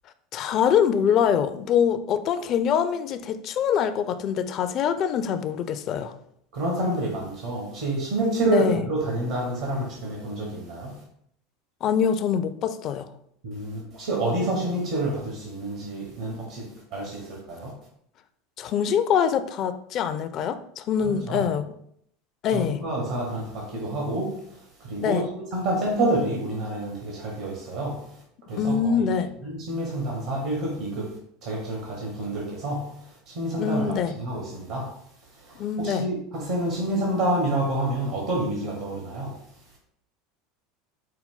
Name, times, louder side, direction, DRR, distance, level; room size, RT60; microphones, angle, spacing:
voice 1, 0.3-6.1 8.5-8.8 11.8-13.1 18.6-21.7 22.4-22.8 25.0-25.3 28.5-29.3 33.6-34.1 35.6-36.1, left 7 dB, 45° left, 0.4 m, -24 dB
voice 2, 6.5-11.0 13.4-17.7 21.0-21.4 22.5-28.1 28.5-28.9 29.4-31.1 31.4-33.0 33.3-34.9 35.5-39.4, right 1 dB, 75° right, 1.3 m, -28 dB
5.4 x 2.3 x 3.6 m
hypercardioid pair, 80°, 0 cm